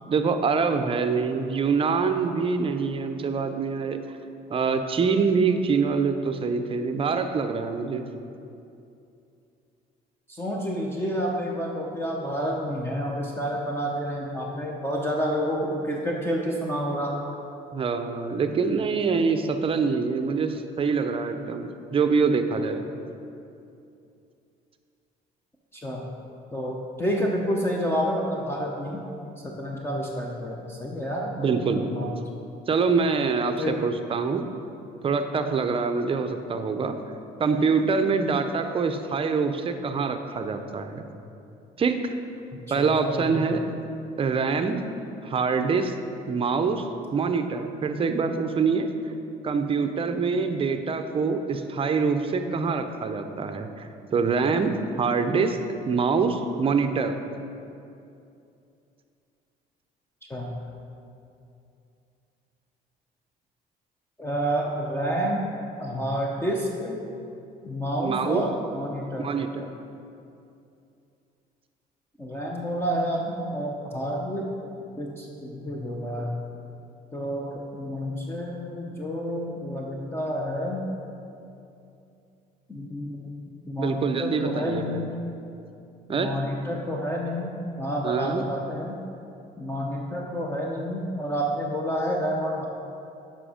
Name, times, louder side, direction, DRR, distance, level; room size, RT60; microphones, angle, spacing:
voice 1, 0.1-4.0 4.5-8.0 17.7-22.9 31.4-31.9 32.7-34.4 35.0-37.0 37.4-41.0 41.8-42.1 42.7-43.7 44.2-44.8 45.2-45.9 46.3-48.9 49.4-55.6 55.9-57.2 68.0-68.4 69.2-69.7 83.8-85.1 86.1-86.3 88.0-88.4, right 5 dB, 35° right, 7 dB, 0.6 m, -25 dB
voice 2, 10.3-17.1 25.7-26.1 26.5-29.0 29.4-32.2 33.6-33.7 42.8-43.5 60.3-60.5 64.2-65.5 65.8-67.0 67.6-69.3 72.2-74.5 74.8-76.3 77.1-80.9 82.7-83.4 83.6-85.1 86.1-88.9 89.6-92.6, equal, 15° left, -2 dB, 0.8 m, -29 dB
7.6 x 5.6 x 5.0 m, 2.7 s
cardioid pair, 110°, 17 cm